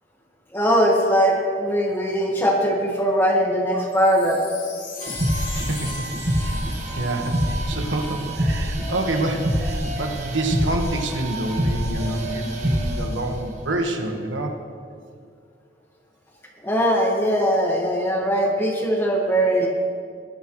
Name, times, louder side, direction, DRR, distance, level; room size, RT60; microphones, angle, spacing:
voice 1, 0.5-4.4 16.6-19.7, equal, 10° left, -1 dB, 1.5 m, -20 dB
Wind chime, 3.9-8.3 8.8-8.9, left 5 dB, 85° left, 3.7 m, -39 dB
sound 1, 5.0-13.2, equal, 40° right, 1.5 m, -26 dB
voice 2, 5.5-6.1 6.4-6.6 6.9-14.6, right 1 dB, 85° right, 3 dB, 1.5 m, -27 dB
21.5 x 11.5 x 3.1 m, 2.2 s
head